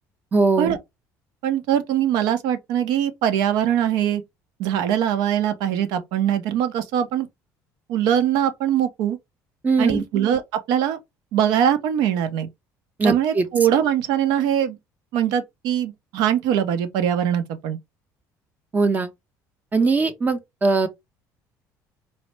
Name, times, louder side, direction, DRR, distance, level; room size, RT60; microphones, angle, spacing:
voice 1, 0.3-0.8 9.6-10.0 13.0-13.4 18.7-19.1 19.7-20.9, right 3 dB, 25° right, 0.7 m, -20 dB
voice 2, 1.4-4.2 4.6-7.3 7.9-9.2 9.8-10.4 10.7-11.0 11.3-12.5 13.0-14.8 15.1-17.8, right 10 dB, 80° right, 0.7 m, -22 dB
4.1 x 2.0 x 3.3 m
cardioid pair, 140°, 7 cm